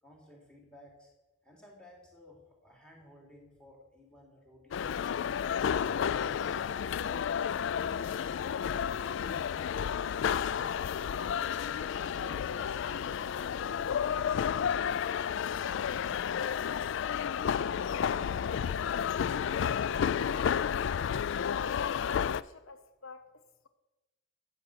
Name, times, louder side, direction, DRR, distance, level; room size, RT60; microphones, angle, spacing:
voice 1, 0.0-1.1 1.4-5.1, left 1 dB, 5° left, -1 dB, 3.3 m, -56 dB
sound 1, 4.7-22.4, left 8 dB, 60° left, 0.3 m, -31 dB
voice 2, 21.5-23.7, left 4 dB, 75° left, 10 dB, 0.8 m, -51 dB
13.0 x 8.3 x 6.3 m, 1.1 s
head